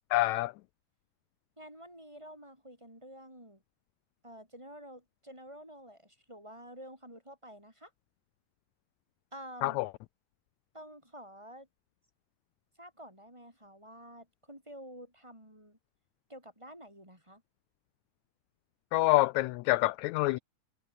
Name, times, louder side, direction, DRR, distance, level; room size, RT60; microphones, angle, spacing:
voice 1, 0.1-0.5 9.6-9.9 18.9-20.4, left 19 dB, 80° left, 1.7 m, -26 dB
voice 2, 1.6-3.6 4.2-7.9 9.3-9.8 10.7-11.7 12.8-15.8 16.3-17.4, equal, 10° right, 7.9 m, -50 dB
omnidirectional pair, 3.6 m